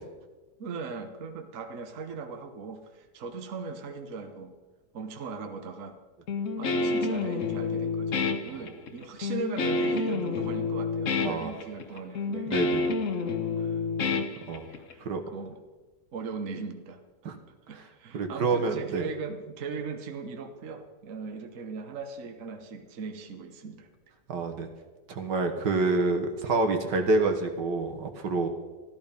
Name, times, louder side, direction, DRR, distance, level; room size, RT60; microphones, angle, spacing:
voice 1, 0.6-4.5 4.9-6.0 6.6-12.5 13.6-13.8 14.7-15.6 16.1-17.0 17.7-23.9, right 4 dB, 50° right, 6 dB, 1.4 m, -38 dB
Guitar, 6.3-14.9, left 4 dB, 50° left, 1.2 m, -29 dB
voice 2, 11.2-11.5 12.5-12.9 14.5-14.7 15.0-15.2 17.2-17.4 17.8-17.9 18.1-19.1 24.3-24.7 25.1-28.5, right 3 dB, 75° right, 5 dB, 1.9 m, -27 dB
14.0 x 13.0 x 5.3 m, 1.3 s
omnidirectional pair, 1.9 m